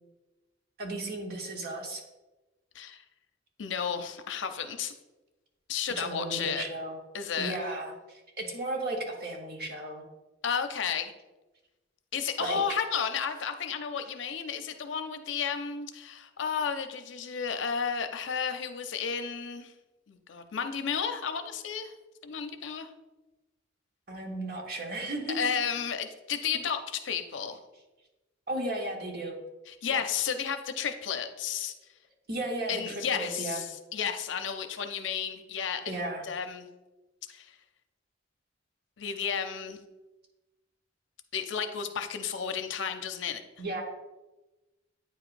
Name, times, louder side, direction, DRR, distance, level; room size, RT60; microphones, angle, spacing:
voice 1, 0.8-2.0 6.0-7.0 7.4-10.1 12.4-12.6 24.1-25.5 28.5-29.4 29.9-30.0 32.3-33.6 35.9-36.2 43.6-43.8, right 2 dB, 55° right, 1 dB, 1.1 m, -35 dB
voice 2, 3.6-4.9 5.7-6.7 7.1-7.6 10.4-11.1 12.1-19.7 20.1-21.9 22.2-22.9 25.3-27.6 29.7-31.7 32.7-36.7 37.3-37.6 39.0-39.8 41.3-43.4, left 7 dB, 70° left, 8 dB, 0.6 m, -32 dB
9.0 x 4.9 x 2.5 m, 1.1 s
head